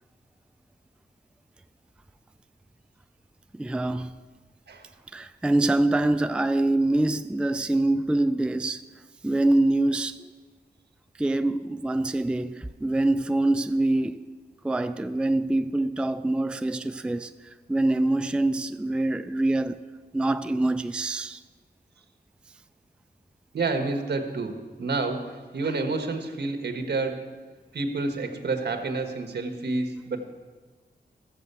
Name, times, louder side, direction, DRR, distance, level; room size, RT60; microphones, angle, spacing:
voice 1, 3.5-4.1 5.1-8.8 9.2-10.3 11.2-14.2 14.6-17.3 17.7-19.8 20.1-21.4, right 2 dB, 5° right, 0.3 m, -25 dB
voice 2, 23.5-27.3 27.7-30.2, right 3 dB, 75° right, 1.4 m, -29 dB
14.0 x 7.6 x 6.8 m
wide cardioid pair, 120°, 17 cm